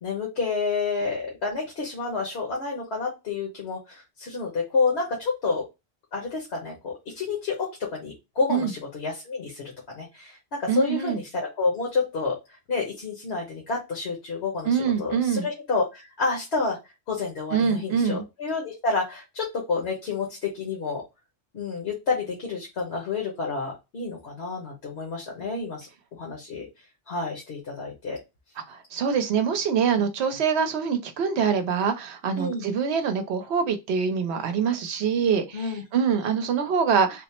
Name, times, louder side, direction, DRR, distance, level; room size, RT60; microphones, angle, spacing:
voice 1, 0.0-5.6 6.1-16.8 17.1-21.0 21.5-26.7 27.1-28.2 32.4-32.6 35.5-35.8, left 4 dB, 65° left, 1.3 m, -29 dB
voice 2, 10.7-11.2 14.6-15.5 17.5-18.2 28.7-37.2, right 6 dB, 70° right, 0.9 m, -24 dB
3.6 x 2.0 x 4.2 m
omnidirectional pair, 1.2 m